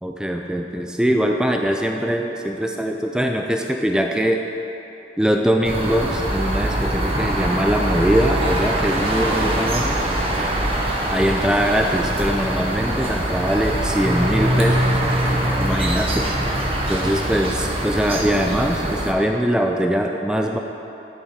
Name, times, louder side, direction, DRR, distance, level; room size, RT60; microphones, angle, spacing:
voice 1, 0.0-4.5 5.2-10.0 11.1-15.0 15.6-16.3 16.9-20.6, equal, 5° right, 2 dB, 0.3 m, -22 dB
sound 1, 5.6-19.1, right 1 dB, 30° right, 0.8 m, -23 dB
9.9 x 4.6 x 5.1 m, 3.0 s
head